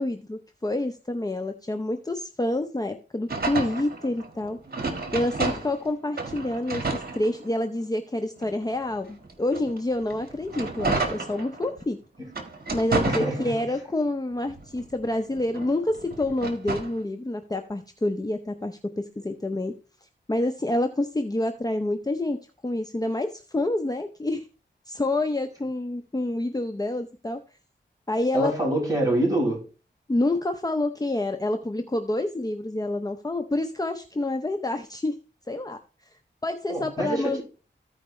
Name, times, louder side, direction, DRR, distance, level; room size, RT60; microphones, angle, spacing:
voice 1, 0.0-4.6 5.1-12.0 12.7-19.7 20.3-24.5 24.9-27.4 28.1-28.5 30.1-35.1 35.5-35.8 36.4-37.4, left 1 dB, 20° left, 0.8 m, -28 dB
sound 1, 3.3-5.9 6.2-7.8 8.4-11.8 12.3-13.9 14.3-17.0, right 3 dB, 55° right, 1.8 m, -31 dB
voice 2, 13.0-13.7 28.3-29.7 36.7-37.4, right 1 dB, 20° right, 5.8 m, -26 dB
15.0 x 5.0 x 3.2 m
wide cardioid pair, 60°, 19 cm